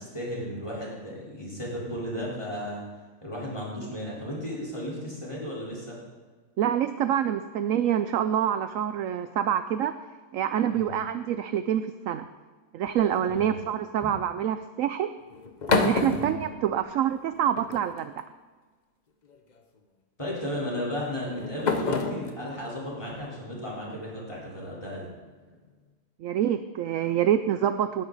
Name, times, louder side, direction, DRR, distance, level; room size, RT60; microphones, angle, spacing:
voice 1, 0.0-2.8 3.2-6.0 10.7-11.0 13.3-13.6 14.0-14.1 16.1-16.4 20.2-25.1, equal, 15° left, -5 dB, 4.2 m, -34 dB
voice 2, 6.6-10.0 10.3-12.3 12.7-15.1 15.7-18.1 26.2-28.0, right 10 dB, 70° right, 11 dB, 0.8 m, -26 dB
sound 1, 12.9-13.4 15.3-17.2 17.6-18.2 19.3-19.6 20.8-24.0, left 3 dB, 35° left, 0.7 m, -30 dB
19.0 x 11.0 x 4.0 m, 1.4 s
omnidirectional pair, 1.7 m